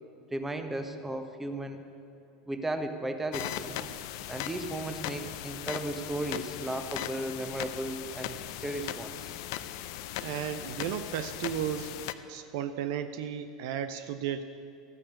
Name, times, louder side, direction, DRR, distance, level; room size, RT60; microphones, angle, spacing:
voice 1, 0.3-1.8 2.5-3.9 4.3-9.3, right 1 dB, 10° right, 6 dB, 1.2 m, -35 dB
sound 1, 3.3-12.1, left 13 dB, 65° left, 0.5 m, -38 dB
voice 2, 10.2-11.9 12.3-14.4, right 9 dB, 65° right, 10 dB, 0.6 m, -34 dB
13.0 x 9.9 x 6.5 m, 2.5 s
hypercardioid pair, 80°, 3 cm